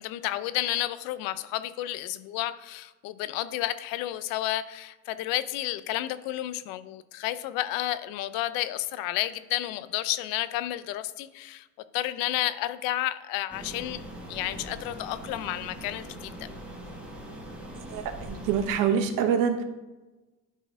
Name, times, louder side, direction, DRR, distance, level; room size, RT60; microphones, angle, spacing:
voice 1, 0.0-11.7 11.9-14.0 14.3-16.5, left 14 dB, 85° left, 14 dB, 0.6 m, -31 dB
sound 1, 13.5-18.7, right 1 dB, 5° right, 1.1 m, -41 dB
voice 2, 17.9-19.6, right 7 dB, 70° right, 7 dB, 1.0 m, -25 dB
12.0 x 4.2 x 3.6 m, 1.2 s
cardioid pair, 145°, 34 cm